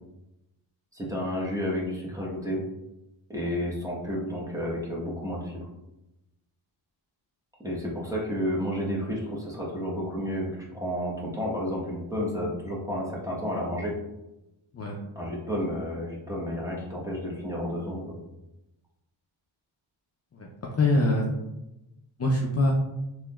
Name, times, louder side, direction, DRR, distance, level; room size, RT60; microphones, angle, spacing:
voice 1, 0.9-2.6 3.3-5.7 7.6-13.9 15.1-18.2, equal, 5° right, -4 dB, 1.0 m, -31 dB
voice 2, 20.3-21.3 22.2-22.7, left 2 dB, 30° left, -2 dB, 0.5 m, -24 dB
3.4 x 2.9 x 2.3 m, 0.94 s
cardioid pair, 70°, 49 cm